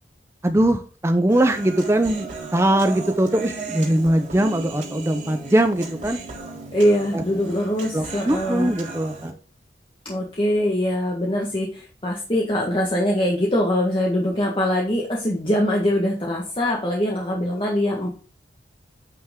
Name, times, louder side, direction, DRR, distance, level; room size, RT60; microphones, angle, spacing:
voice 1, 0.4-6.2 7.1-7.2 7.9-9.3, right 1 dB, 15° right, 8 dB, 0.6 m, -21 dB
Human voice, 1.3-9.3, right 3 dB, 45° right, 3.2 m, -36 dB
voice 2, 6.7-8.7 10.0-18.2, equal, 30° left, -2 dB, 1.6 m, -23 dB
9.1 x 5.9 x 3.7 m, 0.38 s
head